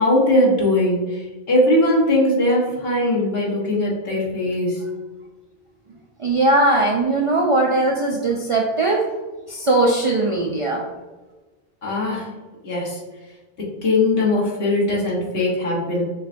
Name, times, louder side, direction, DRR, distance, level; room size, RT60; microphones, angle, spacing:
voice 1, 0.0-4.8 11.8-12.3 12.6-13.0 13.6-16.0, left 1 dB, 70° left, -6 dB, 1.5 m, -20 dB
voice 2, 6.2-9.1 9.5-10.8, right 2 dB, 55° right, -1 dB, 0.3 m, -19 dB
6.3 x 2.2 x 2.6 m, 1.2 s
omnidirectional pair, 1.0 m